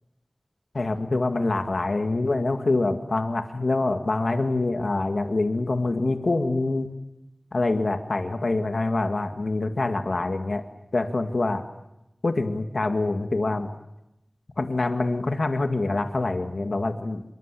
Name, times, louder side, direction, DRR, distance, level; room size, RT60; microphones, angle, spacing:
voice 1, 0.7-6.9 7.5-10.7 10.9-11.6 12.2-13.7 14.6-17.3, left 2 dB, 80° left, 6 dB, 2.0 m, -25 dB
26.0 x 23.5 x 8.4 m, 0.89 s
wide cardioid pair, 45°, 0 cm